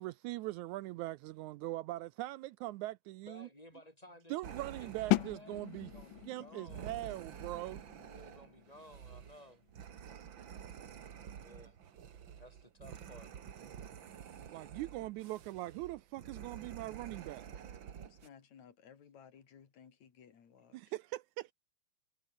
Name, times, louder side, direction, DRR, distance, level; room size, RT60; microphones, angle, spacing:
voice 1, 0.0-3.5 4.3-5.9 6.3-7.8 14.5-17.5 20.7-21.5, right 17 dB, 85° right, 1.7 m, -41 dB
voice 2, 3.2-5.6 5.9-7.0 8.0-9.7 11.3-11.8 12.3-13.3, left 1 dB, 10° left, 4.3 m, -56 dB
sound 1, 4.4-18.3, right 8 dB, 50° right, 1.5 m, -50 dB
sound 2, 5.1-10.8, left 20 dB, 80° left, 1.9 m, -39 dB
voice 3, 17.9-20.8, left 7 dB, 55° left, 4.1 m, -58 dB
omnidirectional pair, 4.0 m